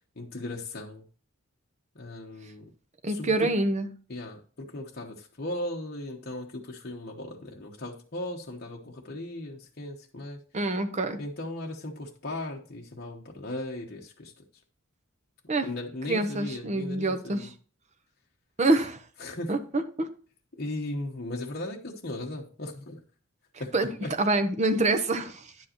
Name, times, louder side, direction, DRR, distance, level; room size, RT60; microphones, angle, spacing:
voice 1, 0.2-1.0 1.9-2.6 3.1-3.5 4.1-10.4 11.2-14.3 15.6-17.5 19.2-19.6 20.5-23.0 23.6-24.1, left 1 dB, 50° left, 1.1 m, -37 dB
voice 2, 3.0-3.9 10.5-11.2 15.5-15.7 16.1-17.5 18.6-19.0 19.5-20.1 23.7-23.9 24.2-25.5, right 2 dB, 35° right, 0.8 m, -26 dB
9.9 x 7.6 x 3.0 m
head